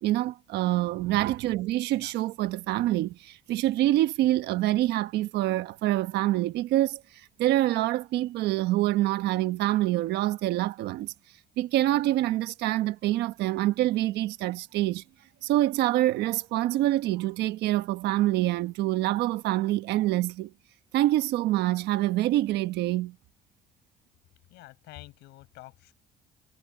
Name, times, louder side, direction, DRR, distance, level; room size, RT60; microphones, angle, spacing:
voice 1, 0.0-7.0 7.4-11.1 11.6-15.0 15.4-20.5 20.9-23.1, right 15 dB, 85° right, 1.3 m, -26 dB
voice 2, 24.5-25.9, left 19 dB, 90° left, 6.1 m, -48 dB
cardioid pair, 110°, 17 cm